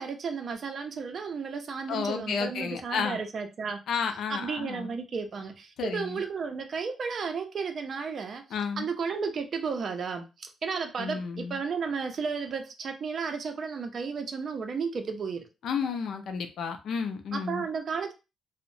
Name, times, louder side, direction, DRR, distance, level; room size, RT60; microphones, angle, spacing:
voice 1, 0.0-3.8 4.3-8.4 8.8-15.5 17.3-18.1, right 5 dB, 50° right, 0.5 m, -33 dB
voice 2, 1.9-3.2 3.9-4.9 5.8-6.2 8.5-8.9 11.0-11.6 15.6-17.6, left 6 dB, 75° left, 0.4 m, -32 dB
2.8 x 2.0 x 2.6 m
cardioid pair, 120°, 0 cm